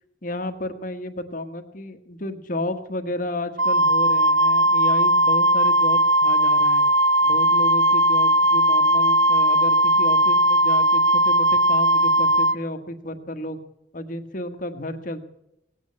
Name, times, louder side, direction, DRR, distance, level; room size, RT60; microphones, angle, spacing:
voice 1, 0.2-6.9 7.2-13.6 13.9-15.2, left 1 dB, 45° left, 7 dB, 1.3 m, -32 dB
Wind instrument woodwind instrument, 3.6-12.6, right 1 dB, 75° right, 0.6 m, -18 dB
18.0 x 8.6 x 8.5 m, 0.85 s
head